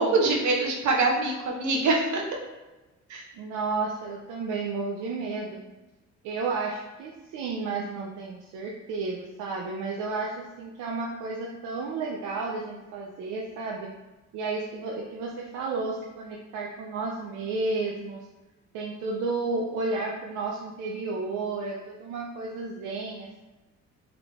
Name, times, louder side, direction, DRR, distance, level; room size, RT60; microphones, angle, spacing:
voice 1, 0.0-2.2 3.1-3.2, right 3 dB, 70° right, 0 dB, 1.0 m, -24 dB
voice 2, 3.3-5.6 6.2-13.9 14.3-18.3 18.7-23.4, right 3 dB, 90° right, -1 dB, 0.5 m, -32 dB
3.4 x 3.1 x 3.6 m, 1.1 s
cardioid pair, 90°, 30 cm